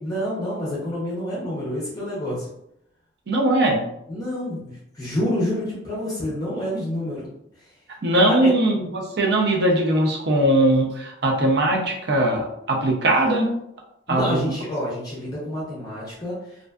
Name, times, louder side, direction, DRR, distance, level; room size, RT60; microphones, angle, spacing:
voice 1, 0.0-2.5 4.1-7.3 7.6-7.7 8.2-8.5 14.1-16.7, left 1 dB, 20° left, -7 dB, 0.5 m, -28 dB
voice 2, 3.3-3.9 8.0-13.5 14.1-14.6, right 1 dB, 55° right, 1 dB, 0.5 m, -20 dB
2.5 x 2.3 x 2.2 m, 0.80 s
head